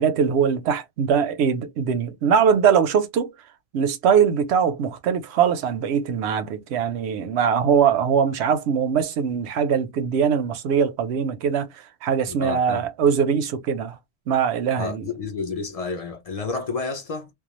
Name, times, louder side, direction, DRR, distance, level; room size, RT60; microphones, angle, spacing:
voice 1, 0.0-3.3 3.7-11.7 12.0-14.0 14.3-15.0, right 7 dB, 90° right, 0.8 m, -21 dB
voice 2, 12.3-12.8 14.8-17.3, left 4 dB, 45° left, 0.5 m, -30 dB
2.3 x 2.2 x 2.8 m
omnidirectional pair, 1.1 m